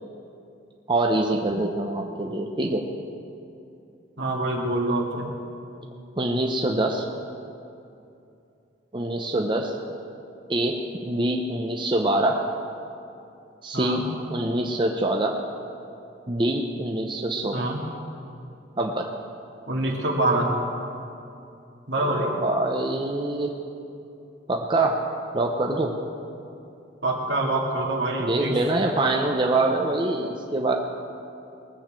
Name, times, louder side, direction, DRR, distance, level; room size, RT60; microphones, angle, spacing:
voice 1, 0.9-2.8 6.2-7.0 8.9-9.7 10.5-12.4 13.6-14.0 14.3-15.4 16.3-17.7 18.8-19.2 22.0-23.5 24.5-25.0 25.3-26.0 28.2-30.7, right 2 dB, 25° right, 1 dB, 0.8 m, -25 dB
voice 2, 4.2-5.3 13.7-14.0 17.5-17.8 19.7-20.6 21.9-22.4 27.0-28.6, right 2 dB, 70° right, 0 dB, 2.2 m, -25 dB
20.0 x 7.1 x 7.5 m, 2.7 s
head